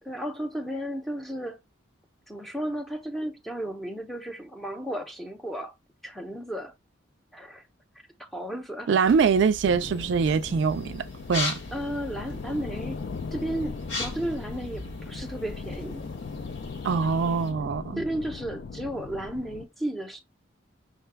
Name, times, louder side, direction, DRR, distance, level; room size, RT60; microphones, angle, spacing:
voice 1, 0.0-1.6 2.3-5.7 6.0-6.7 7.3-7.7 8.2-8.9 11.7-13.0 13.3-16.0 17.0-17.1 18.0-20.2, right 1 dB, ahead, 0.6 m, -34 dB
voice 2, 8.9-11.6 16.8-18.0, right 5 dB, 65° right, 0.3 m, -23 dB
sound 1, 9.0-17.5, left 2 dB, 70° left, 1.6 m, -39 dB
sound 2, 9.6-19.7, left 4 dB, 55° left, 0.3 m, -38 dB
5.6 x 2.2 x 3.3 m
head